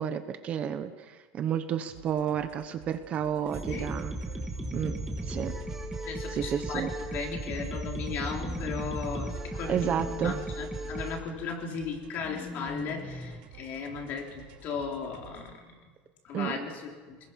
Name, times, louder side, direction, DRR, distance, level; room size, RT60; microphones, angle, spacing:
voice 1, 0.0-4.1 4.7-5.0 5.2-5.5 6.3-6.9 9.7-10.4 16.3-16.6, right 9 dB, 30° right, 9 dB, 1.0 m, -31 dB
sound 1, 1.9-15.6, right 6 dB, 85° right, 5.6 m, -52 dB
voice 2, 3.4-3.9 6.1-10.0 10.2-15.8 16.2-17.2, left 5 dB, 40° left, 2 dB, 3.5 m, -36 dB
sound 2, 3.5-11.2, right 2 dB, 5° right, 2.3 m, -36 dB
sound 3, 4.5-6.0 8.3-9.4 9.7-10.4 12.2-13.4, left 2 dB, 15° left, 1.1 m, -42 dB
27.5 x 21.0 x 5.9 m, 1.4 s
cardioid pair, 170°, 5 cm